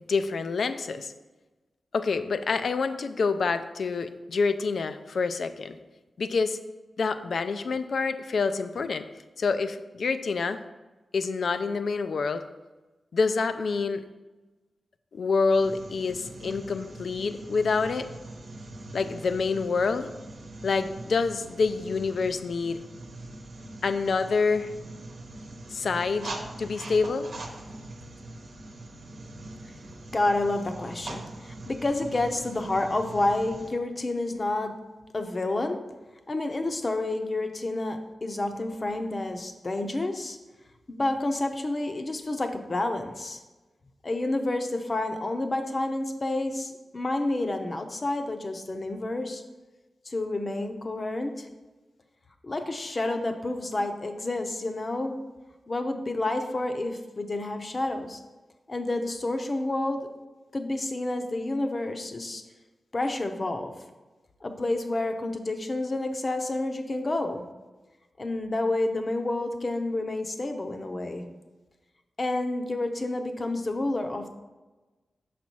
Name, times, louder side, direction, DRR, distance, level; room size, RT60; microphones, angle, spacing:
voice 1, 0.1-1.1 1.9-5.8 6.2-6.6 7.0-9.1 9.4-10.6 11.1-12.4 13.1-14.0 15.1-18.1 18.9-20.1 20.6-22.8 23.8-24.7 25.7-27.3, left 4 dB, 70° left, 10 dB, 0.4 m, -27 dB
sound 1, 15.5-33.7, right 2 dB, 80° right, 0.9 m, -42 dB
voice 2, 30.1-34.7 35.1-35.8 36.3-40.4 40.9-43.4 44.0-49.4 50.0-51.5 52.4-55.1 55.7-58.2 58.7-60.1 60.5-62.4 62.9-63.7 64.4-67.4 68.2-71.3 72.2-74.3, left 2 dB, 40° left, 6 dB, 0.7 m, -29 dB
6.1 x 4.2 x 4.5 m, 1.2 s
cardioid pair, 70°, 0 cm